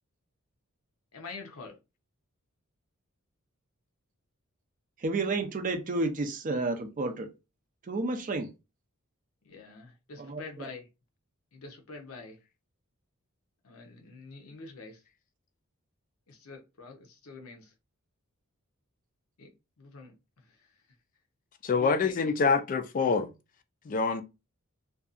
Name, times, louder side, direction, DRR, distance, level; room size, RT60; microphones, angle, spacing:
voice 1, 1.1-1.8 9.4-10.9 11.5-12.4 13.6-15.0 16.3-17.7 19.4-20.8 21.8-22.2, left 4 dB, 80° left, 0.7 m, -46 dB
voice 2, 5.0-7.3 7.9-8.5 10.2-10.7, right 3 dB, 35° right, 0.4 m, -31 dB
voice 3, 21.6-23.3 23.9-24.2, left 5 dB, 40° left, 0.3 m, -26 dB
2.6 x 2.3 x 2.4 m
head